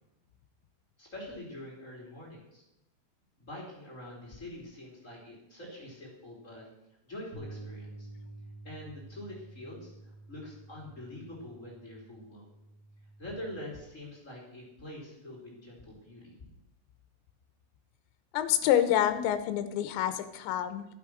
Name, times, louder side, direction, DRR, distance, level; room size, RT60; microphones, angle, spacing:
voice 1, 1.0-2.6 3.4-6.7 7.0-8.1 8.6-12.5 13.2-16.4, left 1 dB, 20° left, -3 dB, 2.9 m, -45 dB
sound 1, 7.3-13.6, right 2 dB, 70° right, 6.6 m, -49 dB
voice 2, 18.3-20.9, left 11 dB, 80° left, 10 dB, 2.9 m, -27 dB
14.5 x 8.7 x 6.4 m, 0.86 s
omnidirectional pair, 6.0 m